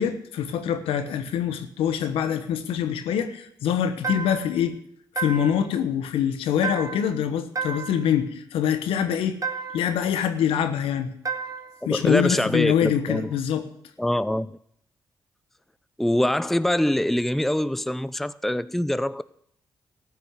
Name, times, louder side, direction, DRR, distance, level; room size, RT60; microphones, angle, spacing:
voice 1, 0.0-4.8 5.2-9.4 9.7-11.1 11.8-13.6, left 9 dB, 80° left, 1.1 m, -24 dB
sound 1, 4.0-4.6 5.2-5.7 6.6-7.2 7.6-8.1 9.4-10.0 11.3-11.8, right 5 dB, 40° right, 2.0 m, -32 dB
voice 2, 11.9-13.3 14.0-14.6 16.0-19.2, left 1 dB, 5° left, 0.5 m, -24 dB
14.0 x 6.1 x 9.5 m
supercardioid pair, 45°, 9 cm